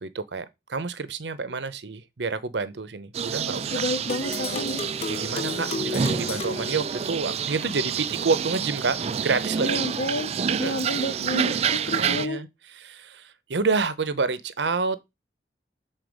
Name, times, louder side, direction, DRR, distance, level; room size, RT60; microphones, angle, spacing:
voice 1, 0.0-3.8 5.1-9.8 10.5-10.7 11.9-12.5 12.8-15.1, right 4 dB, 75° right, 0.7 m, -28 dB
sound 1, 3.1-12.3, right 7 dB, 35° right, 0.3 m, -28 dB
voice 2, 3.7-4.8 7.6-8.4 9.6-10.3 10.6-12.4, left 1 dB, 85° left, 1.6 m, -31 dB
sound 2, 4.1-7.6, left 3 dB, 35° left, 0.5 m, -34 dB
7.9 x 4.0 x 5.2 m
head